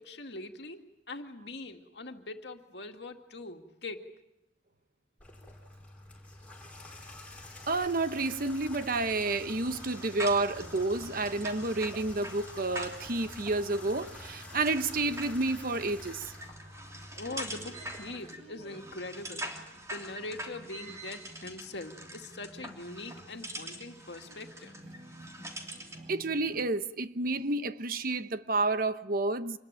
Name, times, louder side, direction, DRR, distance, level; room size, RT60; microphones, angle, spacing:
voice 1, 0.0-4.1 17.2-19.5 19.9-24.7, left 2 dB, 65° left, 2.2 m, -42 dB
Water tap faucet / Bathtub (filling or washing), 5.2-18.0, left 2 dB, 10° left, 5.6 m, -48 dB
voice 2, 7.7-16.3 26.1-29.6, right 2 dB, 50° right, 1.0 m, -30 dB
sound 1, 9.5-26.7, right 1 dB, 35° right, 3.8 m, -55 dB
sound 2, 9.7-26.1, right 1 dB, 15° right, 3.1 m, -44 dB
27.0 x 21.0 x 9.0 m
head